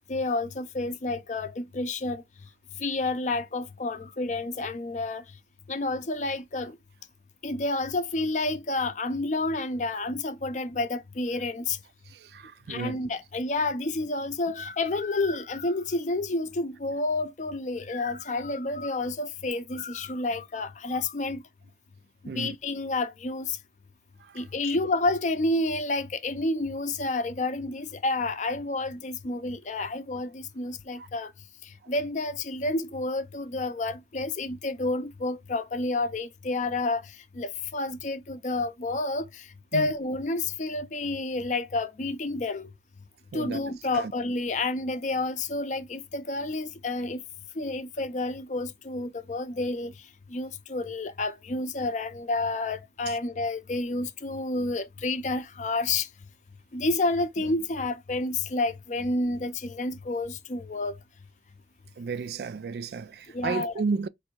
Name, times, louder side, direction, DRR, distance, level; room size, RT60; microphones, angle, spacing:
voice 1, 0.1-2.2 2.8-5.2 5.7-6.8 7.4-11.8 12.7-21.4 22.2-23.6 24.4-31.3 31.9-37.0 37.3-39.4 39.7-42.7 43.3-47.2 47.6-49.9 50.3-56.1 56.7-60.9 63.3-63.7, left 2 dB, 45° left, 0.5 m, -30 dB
voice 2, 12.1-13.0 22.3-22.6 24.2-24.4 30.9-31.1 39.7-39.9 43.3-43.6 43.9-44.1 62.0-64.1, right 5 dB, 60° right, 0.3 m, -33 dB
4.2 x 2.6 x 4.5 m
head